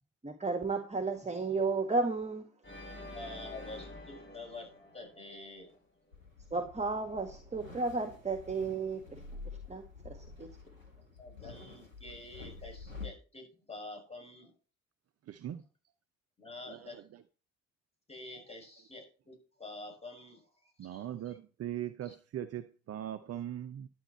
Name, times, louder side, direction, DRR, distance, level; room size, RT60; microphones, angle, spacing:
voice 1, 0.2-2.4 6.5-9.0 9.7-10.5, right 3 dB, 15° right, 1.7 m, -33 dB
Organ, 2.6-5.7, left 1 dB, 30° left, 5.1 m, -48 dB
voice 2, 3.1-5.8 10.9-14.5 16.4-17.0 18.1-21.4 22.0-22.1, left 2 dB, 15° left, 6.8 m, -48 dB
sound 1, 6.1-13.1, left 4 dB, 90° left, 1.6 m, -48 dB
voice 3, 15.3-15.6 16.7-16.8 20.8-23.9, right 11 dB, 40° right, 0.8 m, -40 dB
11.0 x 9.4 x 4.3 m
figure-of-eight pair, 45°, 38 cm